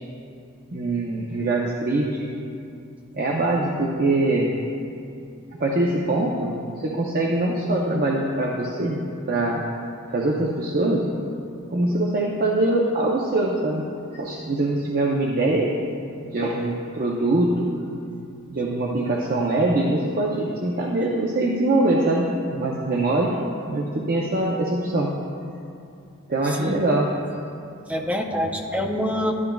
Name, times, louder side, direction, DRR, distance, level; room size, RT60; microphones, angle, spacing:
voice 1, 0.7-2.3 3.1-4.5 5.6-6.5 6.8-9.6 10.1-11.1 11.7-13.9 14.1-15.7 16.2-17.7 18.5-22.3 22.5-23.3 23.7-25.1 26.3-27.1, right 2 dB, 45° right, -2 dB, 0.7 m, -23 dB
voice 2, 26.4-26.8 27.9-29.3, equal, 5° right, 2 dB, 0.6 m, -26 dB
13.0 x 11.0 x 2.3 m, 2.5 s
head